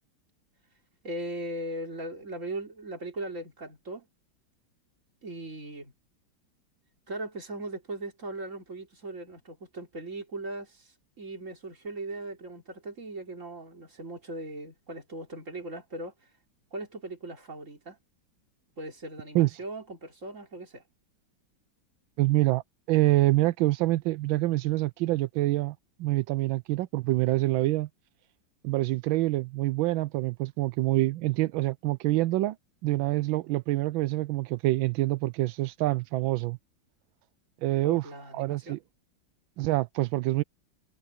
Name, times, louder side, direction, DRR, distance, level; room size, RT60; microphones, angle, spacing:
voice 1, 1.0-4.1 5.2-5.9 7.1-16.1 16.7-18.0 18.8-20.8 37.8-38.8, right 2 dB, 40° right, 3.7 m, -39 dB
voice 2, 22.2-27.9 28.6-32.6 32.8-36.6 37.6-38.8 39.6-40.4, right 17 dB, 85° right, 1.4 m, -26 dB
omnidirectional pair, 2.1 m